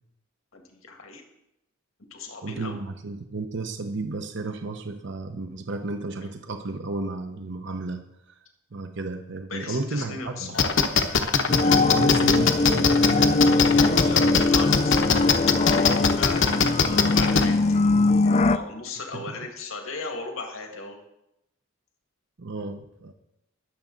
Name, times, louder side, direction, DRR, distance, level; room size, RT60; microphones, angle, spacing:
voice 1, 0.5-1.2 2.1-2.8 9.5-10.7 13.4-16.4 16.9-17.8 18.2-21.0, left 3 dB, 80° left, 2 dB, 2.0 m, -37 dB
voice 2, 2.4-8.0 8.7-10.5 11.8-13.8 19.1-19.4 22.4-23.1, right 3 dB, 60° right, 6 dB, 0.8 m, -33 dB
sound 1, 10.6-17.4, left 5 dB, 60° left, 1.0 m, -20 dB
sound 2, 11.5-18.6, left 3 dB, 35° left, 0.4 m, -21 dB
21.5 x 7.3 x 3.9 m, 0.85 s
head